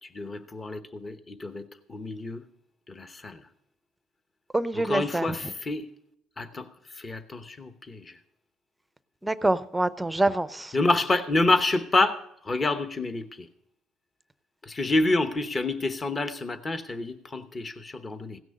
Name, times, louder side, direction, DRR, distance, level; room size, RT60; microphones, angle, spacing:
voice 1, 0.0-2.4 2.9-3.4 4.7-5.9 6.4-6.7 6.9-8.1 10.7-13.5 14.6-18.4, left 2 dB, 25° left, 1.0 m, -28 dB
voice 2, 4.5-5.3 9.2-10.7, right 2 dB, 10° right, 0.6 m, -26 dB
16.5 x 6.2 x 6.5 m
cardioid pair, 125°, 0 cm